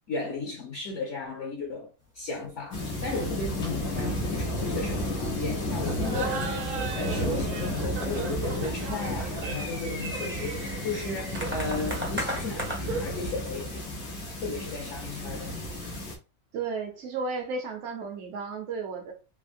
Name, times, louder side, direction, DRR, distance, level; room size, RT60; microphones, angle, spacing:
voice 1, 0.1-14.0 14.4-15.6, left 3 dB, 60° left, 0.9 m, -35 dB
sound 1, 2.0-2.5 2.8-2.9 3.2-3.4 3.7-4.1 4.3-4.9 5.4-5.5 6.2-6.6 7.3-8.2 8.5-13.0, equal, 15° right, 0.4 m, -37 dB
sound 2, 2.7-16.2, left 1 dB, 90° left, 1.2 m, -32 dB
Laughter, 5.8-13.2, right 4 dB, 85° right, 1.2 m, -37 dB
voice 2, 16.5-19.1, right 4 dB, 60° right, 0.9 m, -33 dB
3.4 x 2.0 x 2.5 m
omnidirectional pair, 1.5 m